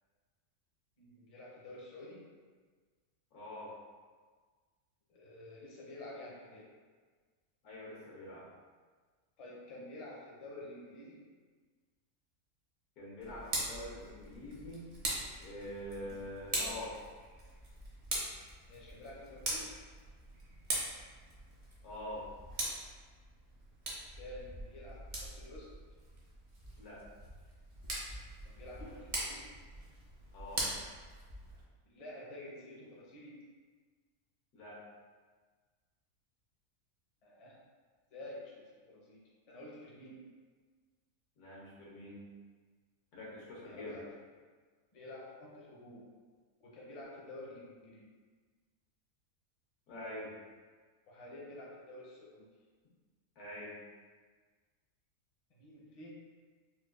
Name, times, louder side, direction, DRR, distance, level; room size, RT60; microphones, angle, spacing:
voice 1, 1.0-2.2 5.1-6.7 9.4-11.2 16.0-16.1 18.7-19.8 24.2-25.7 28.4-29.5 31.8-33.4 37.2-37.6 38.1-38.5 38.8-39.2 39.5-40.2 43.6-44.0 44.9-46.1 46.6-48.1 51.1-52.4 55.5-56.1, left 1 dB, 40° left, -5 dB, 0.5 m, -49 dB
voice 2, 3.3-3.7 7.6-8.4 13.0-14.9 15.4-17.0 21.8-22.3 26.8-27.0 30.3-30.7 34.5-34.8 41.4-42.3 43.1-44.0 49.9-50.3 53.4-53.8, left 1 dB, 85° left, -6 dB, 1.5 m, -45 dB
Tick, 13.2-31.6, right 1 dB, 45° right, 0.6 m, -42 dB
4.2 x 2.2 x 2.4 m, 1.5 s
omnidirectional pair, 1.6 m